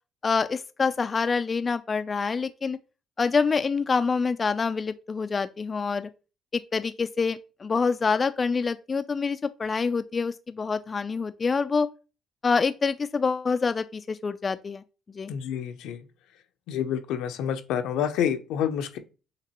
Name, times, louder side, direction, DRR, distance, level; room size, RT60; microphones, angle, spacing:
voice 1, 0.2-2.8 3.2-6.1 6.5-11.9 12.4-14.8 15.1-15.3, left 5 dB, 30° left, 0.3 m, -26 dB
voice 2, 15.3-16.0 16.7-19.0, left 9 dB, 85° left, 0.6 m, -28 dB
5.8 x 2.9 x 2.9 m
cardioid pair, 100°, 0 cm